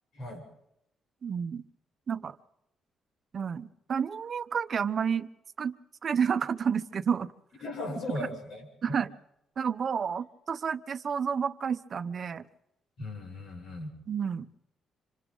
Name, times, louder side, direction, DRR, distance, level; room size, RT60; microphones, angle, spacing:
voice 1, 1.2-1.6 2.1-2.4 3.3-5.3 5.6-5.8 6.0-7.3 8.8-9.1 9.6-12.5 14.1-14.5, right 7 dB, 50° right, 13 dB, 0.9 m, -30 dB
voice 2, 7.6-9.0 13.0-13.9, left 1 dB, 65° left, 1 dB, 7.3 m, -37 dB
26.5 x 26.0 x 4.0 m, 0.82 s
cardioid pair, 90°, 0 cm